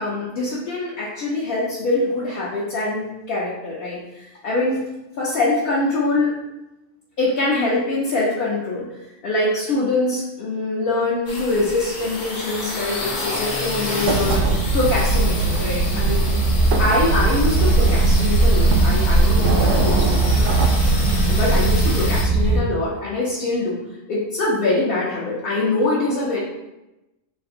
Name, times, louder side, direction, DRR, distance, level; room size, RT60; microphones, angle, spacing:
voice 1, 0.0-4.8 5.2-6.3 7.2-8.9 9.2-16.3 16.8-20.7 21.3-23.8 24.1-26.4, left 2 dB, 55° left, -7 dB, 0.8 m, -24 dB
sound 1, 11.3-22.2, left 2 dB, 90° left, 1.2 m, -30 dB
sound 2, 14.0-22.6, right 2 dB, 75° right, 0.9 m, -18 dB
3.4 x 2.5 x 3.7 m, 0.98 s
omnidirectional pair, 1.3 m